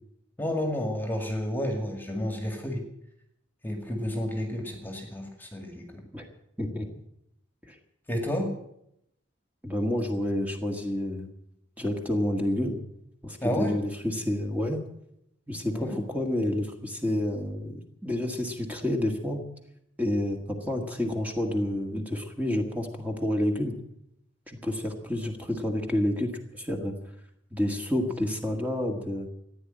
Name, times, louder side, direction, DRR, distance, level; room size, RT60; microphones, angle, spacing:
voice 1, 0.4-2.8 3.6-6.0 8.1-8.5 13.4-13.8 15.7-16.0, left 1 dB, 10° left, 3 dB, 2.0 m, -31 dB
voice 2, 9.6-11.3 11.8-12.8 13.2-14.8 15.5-19.4 20.0-23.7 24.5-26.9 27.5-29.3, left 1 dB, 10° right, 2 dB, 1.8 m, -29 dB
15.0 x 9.9 x 9.0 m, 0.78 s
head